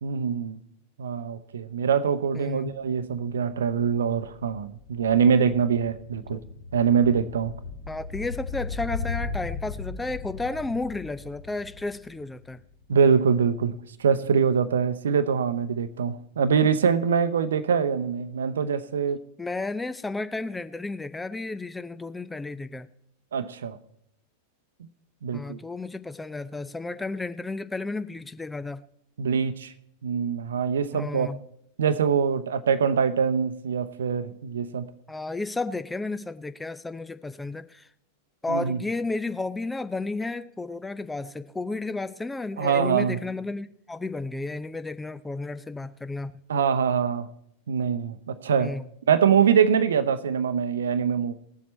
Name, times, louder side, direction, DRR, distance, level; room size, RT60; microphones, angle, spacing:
voice 1, 0.0-0.6 1.0-6.4 6.7-7.5 12.9-13.7 14.0-19.2 23.3-23.8 25.2-25.6 29.2-29.7 30.0-31.3 31.8-34.9 38.5-38.8 42.6-43.2 46.5-47.3 47.7-48.7 49.1-51.3, right 7 dB, 65° right, 0.8 m, -24 dB
voice 2, 2.3-2.7 6.3-6.4 7.9-12.6 19.4-22.9 25.3-28.8 30.9-31.4 35.1-37.9 38.4-46.4 48.6-48.9, left 3 dB, 10° left, 0.6 m, -32 dB
sound 1, 3.1-13.2 13.5-13.6, left 4 dB, 40° left, 2.1 m, -38 dB
19.0 x 7.3 x 4.3 m
figure-of-eight pair, 90°, 0 cm